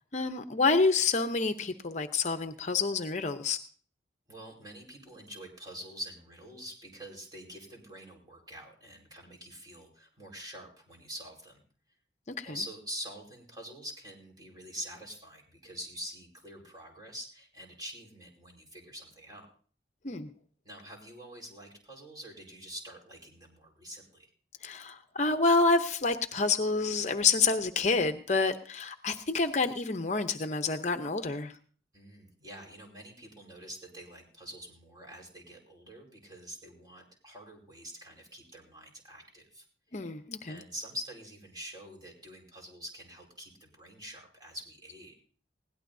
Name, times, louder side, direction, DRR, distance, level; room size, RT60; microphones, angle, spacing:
voice 1, 0.1-3.6 12.4-12.5 20.0-20.3 24.6-31.5 39.9-40.6, left 4 dB, 40° left, 8 dB, 0.7 m, -28 dB
voice 2, 4.3-11.6 12.4-19.5 20.6-24.3 31.9-39.6 40.5-45.2, equal, 25° right, 0 dB, 4.6 m, -45 dB
21.0 x 17.0 x 2.7 m, 0.43 s
head